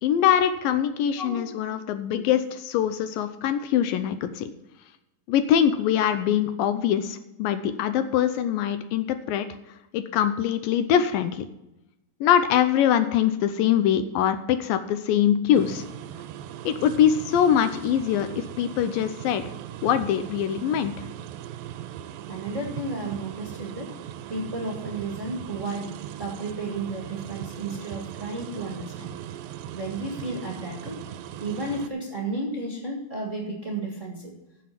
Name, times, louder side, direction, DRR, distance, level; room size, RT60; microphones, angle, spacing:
voice 1, 0.0-4.5 5.3-9.5 9.9-11.5 12.2-15.8 16.7-19.4 19.8-20.9, left 9 dB, 80° left, 10 dB, 2.3 m, -23 dB
sound 1, 15.5-31.9, right 11 dB, 85° right, 2.4 m, -39 dB
voice 2, 22.3-23.9 24.3-25.9 26.2-29.1 29.7-31.0 31.4-34.3, right 2 dB, 30° right, -1 dB, 1.5 m, -32 dB
15.0 x 6.1 x 5.8 m, 0.92 s
omnidirectional pair, 4.3 m